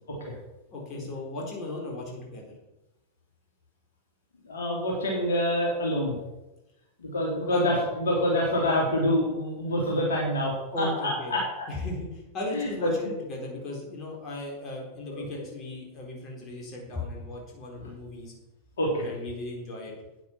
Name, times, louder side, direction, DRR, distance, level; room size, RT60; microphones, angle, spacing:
voice 1, 0.7-2.4 7.5-7.7 10.7-11.3 11.7-18.3 19.0-19.9, left 2 dB, 30° left, -1 dB, 4.1 m, -36 dB
voice 2, 4.4-6.2 7.0-11.7 12.5-12.9 15.1-15.3 17.8-17.9 18.8-19.1, left 1 dB, 65° left, -1 dB, 3.1 m, -27 dB
9.3 x 9.3 x 5.9 m, 1.0 s
figure-of-eight pair, 90°, 0 cm